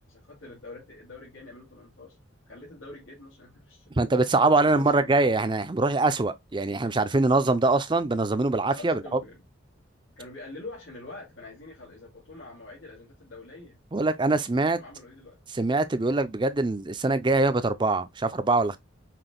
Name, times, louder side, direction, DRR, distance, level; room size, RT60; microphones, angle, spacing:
voice 1, 0.1-2.2 2.5-4.0 4.6-5.1 8.8-9.4 10.2-13.8 14.6-15.4, left 2 dB, 75° left, 2.6 m, -45 dB
voice 2, 4.0-9.0 13.9-14.8 15.5-18.8, right 3 dB, 25° right, 0.5 m, -23 dB
5.8 x 3.4 x 2.3 m
head